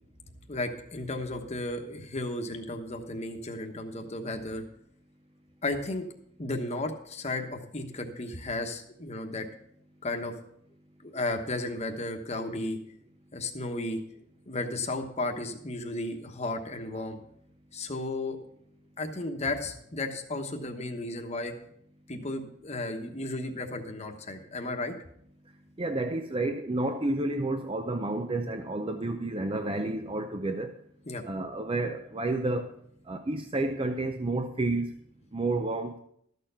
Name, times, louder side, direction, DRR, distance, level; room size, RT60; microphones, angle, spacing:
voice 1, 0.5-4.6 5.6-6.0 6.4-9.5 10.0-10.3 11.0-12.8 13.3-14.0 14.5-17.2 17.7-18.4 19.0-21.5 22.1-25.0 31.1-31.2, left 2 dB, 30° left, 1.2 m, -34 dB
voice 2, 25.8-30.8 31.3-32.7 33.1-34.9 35.3-36.0, right 2 dB, 25° right, 0.5 m, -30 dB
13.5 x 6.7 x 5.6 m
head